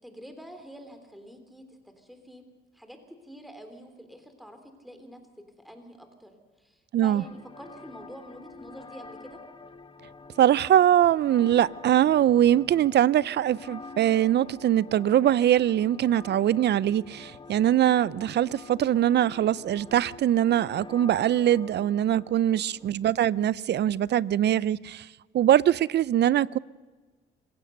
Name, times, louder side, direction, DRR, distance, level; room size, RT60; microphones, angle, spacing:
voice 1, 0.0-2.4 2.7-5.2 5.6-9.4 22.5-22.9, equal, ahead, 3.5 m, -47 dB
voice 2, 6.9-7.2 10.4-25.1 25.3-26.6, right 11 dB, 60° right, 0.6 m, -22 dB
sound 1, 7.2-23.2, left 3 dB, 25° left, 1.3 m, -47 dB
26.0 x 16.5 x 6.6 m
cardioid pair, 90°, 20 cm